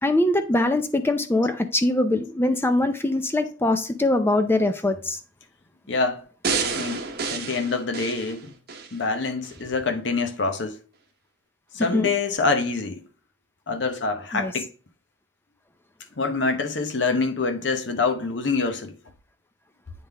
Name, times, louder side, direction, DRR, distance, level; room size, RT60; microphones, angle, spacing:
voice 1, 0.0-5.2 11.9-12.1 14.3-14.5, left 2 dB, 15° left, 0.5 m, -22 dB
voice 2, 5.9-6.2 6.7-7.0 7.3-8.5 8.9-10.8 11.7-13.0 13.7-14.7 16.2-18.9, left 4 dB, 70° left, 0.9 m, -25 dB
sound 1, 6.4-8.9 9.4-9.5, right 5 dB, 55° right, 0.9 m, -29 dB
8.6 x 3.7 x 3.4 m
head